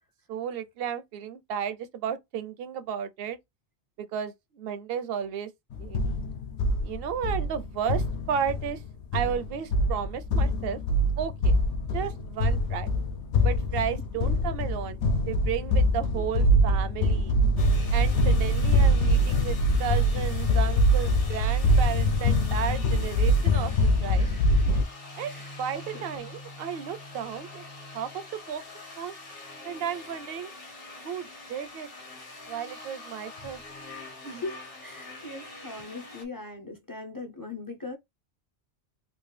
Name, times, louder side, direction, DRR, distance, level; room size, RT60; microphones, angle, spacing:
voice 1, 0.3-3.4 4.0-5.5 5.8-6.2 6.8-8.8 9.1-10.8 11.2-11.6 11.9-12.9 13.4-15.0 15.3-17.3 17.9-23.7 24.0-24.3 25.2-25.3 25.6-27.6 27.9-28.6 29.0-29.1 29.6-30.5 31.0-31.9 32.5-33.6 34.2-34.4, right 8 dB, 65° right, 0.7 m, -33 dB
sound 1, 5.7-24.8, equal, 80° left, 0.9 m, -24 dB
sound 2, 17.6-36.2, left 2 dB, 60° left, 1.3 m, -44 dB
voice 2, 24.1-24.8 25.3-25.5 25.9-26.0 34.3-38.0, left 3 dB, 30° left, 0.4 m, -40 dB
3.6 x 2.3 x 3.2 m
omnidirectional pair, 1.1 m